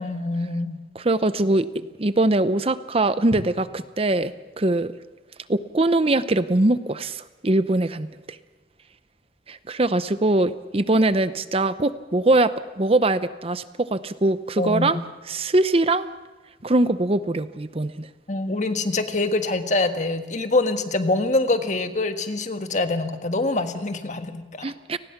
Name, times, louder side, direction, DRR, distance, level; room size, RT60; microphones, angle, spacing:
voice 1, 0.0-0.8 3.3-3.4 14.6-15.0 18.3-24.7, left 2 dB, 45° left, 7 dB, 1.6 m, -25 dB
voice 2, 0.9-1.7 2.0-4.9 5.5-8.1 9.5-15.0 15.3-16.1 16.6-18.1 24.6-25.0, right 2 dB, 35° right, 13 dB, 0.7 m, -22 dB
29.5 x 19.5 x 6.0 m, 1.3 s
head